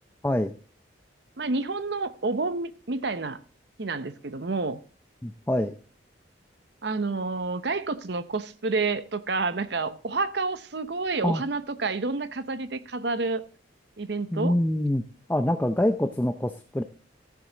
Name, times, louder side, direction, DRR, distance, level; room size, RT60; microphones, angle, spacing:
voice 1, 1.4-3.4 3.8-4.8 6.8-13.4 14.0-14.6, right 3 dB, 60° right, 0.8 m, -29 dB
voice 2, 5.2-5.7 11.2-11.4 14.3-15.0 15.3-16.8, left 1 dB, 10° left, 0.5 m, -25 dB
15.0 x 7.3 x 3.9 m
head